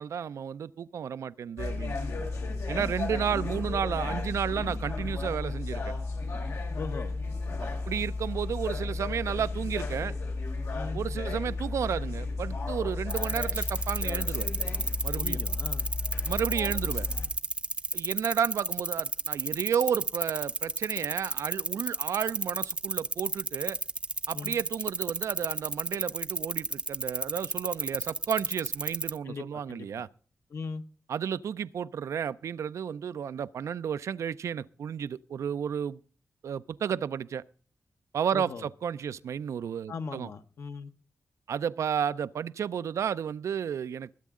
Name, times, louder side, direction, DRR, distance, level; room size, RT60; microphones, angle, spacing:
voice 1, 0.0-2.0 2.7-6.0 7.9-10.1 10.9-14.5 15.0-15.4 16.2-17.1 17.9-23.8 24.3-30.1 31.1-36.0 36.4-37.4 38.1-40.3 41.5-44.1, right 8 dB, 90° right, 0.5 m, -32 dB
sound 1, 1.6-17.3, left 3 dB, 90° left, 3.5 m, -33 dB
voice 2, 3.1-3.4 6.8-7.2 10.7-11.0 15.1-15.9 24.3-24.6 29.2-30.0 30.5-30.8 38.3-38.7 39.9-40.9, left 4 dB, 65° left, 1.1 m, -39 dB
sound 2, 13.1-29.2, right 2 dB, 20° right, 0.6 m, -31 dB
21.5 x 8.3 x 3.7 m
wide cardioid pair, 110°, 5 cm